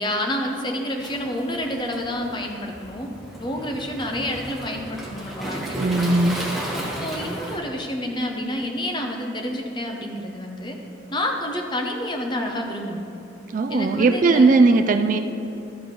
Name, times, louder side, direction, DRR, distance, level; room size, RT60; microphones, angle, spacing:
voice 1, 0.0-3.1 3.4-6.1 7.0-10.7 11.1-13.0 13.7-14.6, left 1 dB, 25° left, 2 dB, 0.8 m, -29 dB
Waves surf, 1.0-7.6, right 1 dB, ahead, 1.1 m, -33 dB
voice 2, 5.7-6.4 13.5-15.2, right 3 dB, 40° right, 7 dB, 0.3 m, -18 dB
12.5 x 4.6 x 5.3 m, 2.7 s
head